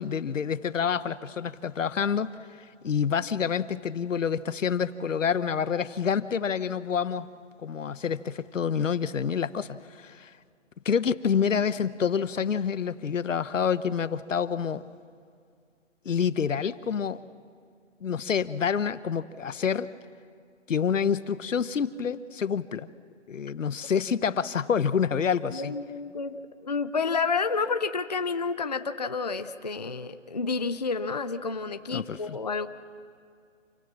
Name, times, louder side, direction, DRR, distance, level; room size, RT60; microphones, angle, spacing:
voice 1, 0.0-7.3 7.6-10.3 10.8-14.8 16.0-17.2 18.0-19.9 20.7-22.9 23.3-25.7 31.9-32.4, left 7 dB, 85° left, 16 dB, 0.9 m, -28 dB
voice 2, 25.5-32.7, left 4 dB, 35° left, 10 dB, 0.5 m, -30 dB
27.5 x 16.5 x 7.3 m, 2.2 s
hypercardioid pair, 170°, 38 cm